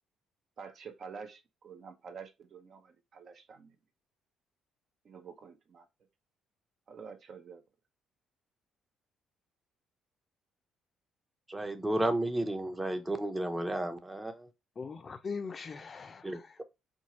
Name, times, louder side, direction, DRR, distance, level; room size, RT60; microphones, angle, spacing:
voice 1, 0.6-3.7 5.0-5.9 6.9-7.6, right 6 dB, 55° right, 0.7 m, -48 dB
voice 2, 11.5-14.5 16.2-16.4, right 1 dB, 15° right, 0.7 m, -32 dB
voice 3, 14.8-16.6, left 5 dB, 35° left, 0.5 m, -41 dB
4.4 x 2.4 x 3.0 m
cardioid pair, 95°, 0 cm